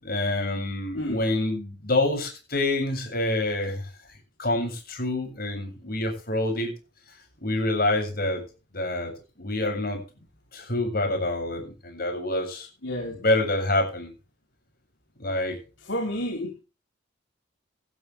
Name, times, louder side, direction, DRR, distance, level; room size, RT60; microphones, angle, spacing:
voice 1, 0.0-3.8 4.4-6.7 7.4-8.4 8.7-9.1 9.4-10.0 10.5-12.7 13.2-14.1 15.2-15.6, left 2 dB, 50° left, 3 dB, 7.5 m, -27 dB
voice 2, 12.8-13.1 15.9-16.6, equal, 65° left, 1 dB, 3.8 m, -30 dB
19.0 x 12.0 x 3.5 m, 0.33 s
head